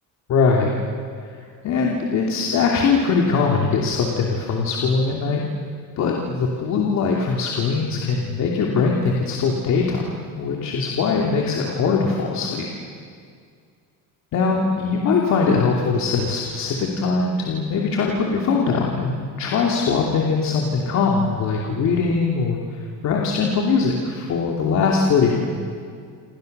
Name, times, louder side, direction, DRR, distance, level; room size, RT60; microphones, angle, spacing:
voice 1, 0.3-0.8 1.2-1.4 1.6-5.4 6.0-12.7 14.3-25.4, left 4 dB, 50° left, 0 dB, 2.9 m, -21 dB
29.5 x 27.5 x 6.8 m, 2.2 s
cardioid pair, 160°, 36 cm